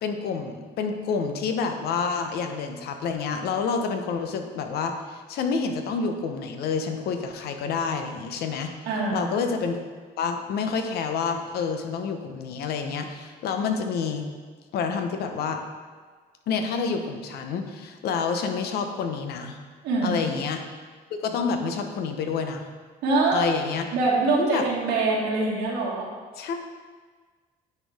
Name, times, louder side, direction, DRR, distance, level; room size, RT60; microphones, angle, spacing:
voice 1, 0.0-8.7 9.1-9.8 10.2-14.3 14.7-15.6 16.5-19.6 20.0-20.6 21.2-22.7 23.3-23.9 24.4-24.6 26.4-26.6, left 5 dB, 70° left, 5 dB, 0.8 m, -28 dB
voice 2, 8.9-9.3 19.8-20.2 23.0-23.5 23.9-26.1, right 3 dB, 85° right, -4 dB, 1.6 m, -24 dB
9.5 x 4.5 x 3.5 m, 1.5 s
cardioid pair, 110°, 17 cm